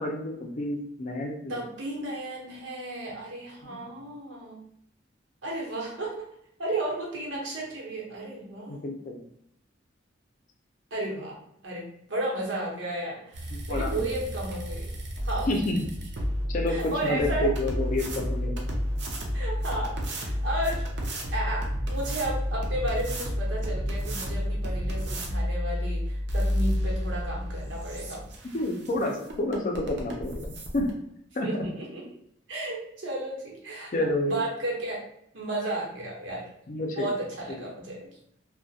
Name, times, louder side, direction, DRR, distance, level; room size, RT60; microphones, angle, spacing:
voice 1, 0.0-1.5 3.6-4.0 8.7-9.2 13.5-14.0 15.5-15.8 16.5-18.7 28.5-30.8 31.4-31.7 33.9-34.4 36.7-37.1, left 1 dB, 45° left, 2 dB, 0.4 m, -29 dB
voice 2, 1.5-4.6 5.4-6.3 6.6-8.9 10.9-11.4 11.6-14.9 15.2-15.5 16.7-17.8 19.3-20.8 21.3-28.2 31.4-32.0 32.5-33.9 34.3-35.0 35.3-36.5 37.0-38.2, right 1 dB, 85° right, -3 dB, 0.8 m, -33 dB
sound 1, 13.3-30.9, equal, 65° right, 0.5 m, -31 dB
2.3 x 2.1 x 2.7 m, 0.74 s
head